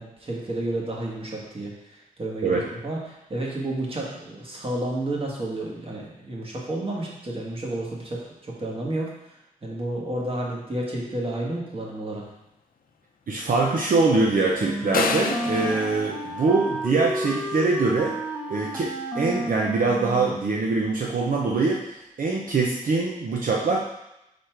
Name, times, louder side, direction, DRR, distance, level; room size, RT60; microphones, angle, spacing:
voice 1, 0.0-12.3, right 1 dB, 40° right, -3 dB, 1.5 m, -31 dB
voice 2, 13.3-18.2 18.5-23.8, right 3 dB, 70° right, -2 dB, 0.7 m, -23 dB
Wind instrument woodwind instrument, 14.5-20.5, right 1 dB, 10° right, 0.7 m, -31 dB
sound 1, 14.9-17.1, left 4 dB, 75° left, 0.6 m, -29 dB
5.0 x 4.1 x 4.5 m, 0.87 s
wide cardioid pair, 105°, 15 cm